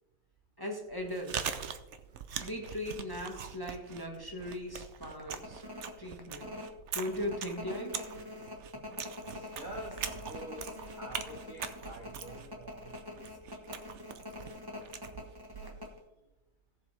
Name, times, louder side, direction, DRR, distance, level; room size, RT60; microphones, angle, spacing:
voice 1, 0.6-1.5 2.4-5.6 6.0-6.5 6.9-8.0, left 1 dB, 15° left, 1 dB, 1.1 m, -38 dB
sound 1, 0.9-1.2 1.7-1.8 2.1-3.0 3.4-3.5 3.9-4.1 4.5-4.6 5.2-16.0, left 2 dB, 15° right, 1.0 m, -45 dB
Chewing mastication, 0.9-16.0, right 7 dB, 80° right, 0.6 m, -42 dB
voice 2, 9.3-13.9, right 1 dB, 40° right, 2 dB, 0.8 m, -48 dB
17.0 x 7.5 x 3.3 m, 1.0 s
omnidirectional pair, 2.1 m